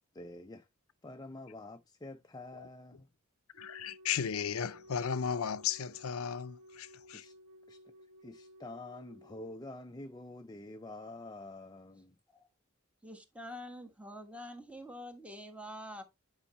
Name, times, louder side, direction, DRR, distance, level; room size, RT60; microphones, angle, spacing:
voice 1, 0.1-0.7 1.0-3.1 7.1-7.4 7.7-7.8 8.2-12.1, left 2 dB, 20° left, 0.4 m, -47 dB
Wind instrument woodwind instrument, 3.5-9.6, equal, 85° right, 2.8 m, -56 dB
voice 2, 3.6-7.2, left 7 dB, 75° left, 0.5 m, -35 dB
voice 3, 13.0-16.0, equal, 5° right, 1.3 m, -46 dB
9.9 x 5.5 x 3.0 m
head